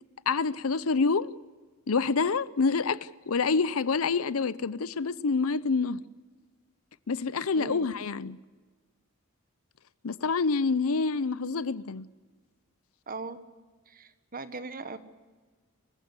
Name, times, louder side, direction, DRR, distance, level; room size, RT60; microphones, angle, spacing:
voice 1, 0.3-1.3 1.9-6.0 7.1-8.4 10.0-12.1, left 4 dB, 75° left, 0.6 m, -27 dB
voice 2, 7.5-7.8 13.1-13.4 13.9-15.0, right 3 dB, 40° right, 1.4 m, -39 dB
26.5 x 15.0 x 8.2 m
head